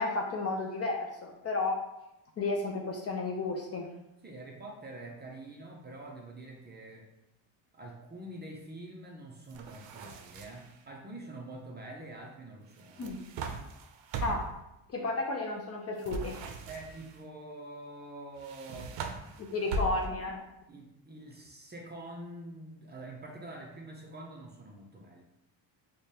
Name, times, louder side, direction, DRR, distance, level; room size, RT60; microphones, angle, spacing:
voice 1, 0.0-1.8 2.4-3.9 13.0-13.2 14.2-14.5 14.9-16.4 19.4-20.4, left 2 dB, 35° left, 1 dB, 0.4 m, -32 dB
voice 2, 4.2-7.1 7.7-13.1 16.7-19.0 19.3-20.0 20.7-25.2, right 2 dB, 20° right, 0 dB, 0.5 m, -46 dB
sound 1, 9.5-10.8 12.8-14.6 16.0-17.2 18.4-20.3, right 2 dB, 70° right, 0.6 m, -39 dB
4.8 x 2.2 x 2.7 m, 0.89 s
cardioid pair, 115°, 47 cm